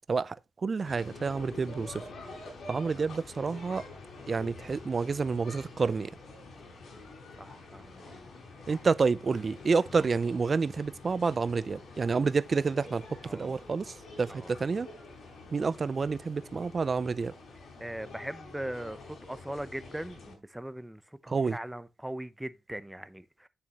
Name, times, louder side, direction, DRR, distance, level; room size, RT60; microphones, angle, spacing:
voice 1, 0.1-2.0 2.7-3.8 4.3-6.1 8.7-14.9 15.5-17.3 21.3-21.6, right 4 dB, 45° right, 0.4 m, -29 dB
sound 1, 0.8-20.3, left 3 dB, 75° left, 4.0 m, -47 dB
voice 2, 7.3-8.3 13.2-13.6 14.3-14.5 17.8-23.5, right 1 dB, 5° right, 0.7 m, -40 dB
sound 2, 9.3-11.4 12.2-14.4, left 3 dB, 55° left, 2.6 m, -60 dB
8.5 x 6.9 x 2.9 m
cardioid pair, 90°, 0 cm